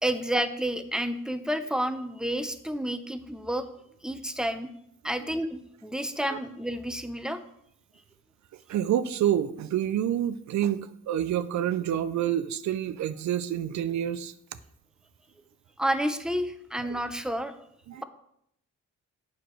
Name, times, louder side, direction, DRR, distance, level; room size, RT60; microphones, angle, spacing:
voice 1, 0.0-3.6 4.0-4.7 5.0-7.4 15.8-17.6 18.0-18.1, right 1 dB, ahead, 9 dB, 0.6 m, -30 dB
voice 2, 8.7-14.3 16.8-17.0 17.9-18.0, right 10 dB, 65° right, 12 dB, 0.5 m, -28 dB
7.9 x 6.3 x 3.1 m, 0.73 s
cardioid pair, 80°, 30 cm